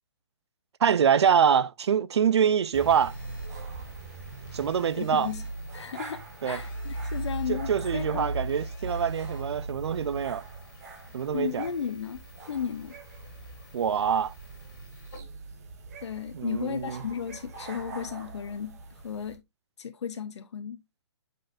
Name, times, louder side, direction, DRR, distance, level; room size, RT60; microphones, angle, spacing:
voice 1, 0.8-3.1 4.5-5.3 6.4-6.6 7.5-10.5 11.1-11.7 13.7-14.3 16.3-17.0, right 7 dB, 70° right, 0.5 m, -25 dB
Telephone, 2.7-15.2, left 5 dB, 45° left, 2.4 m, -57 dB
sound 1, 2.7-19.4, right 2 dB, 35° right, 1.4 m, -39 dB
voice 2, 5.0-5.4 5.7-8.3 11.3-13.0 16.0-19.4 19.8-20.8, left 7 dB, 75° left, 0.7 m, -35 dB
7.4 x 5.5 x 2.5 m
hypercardioid pair, 175°, 15 cm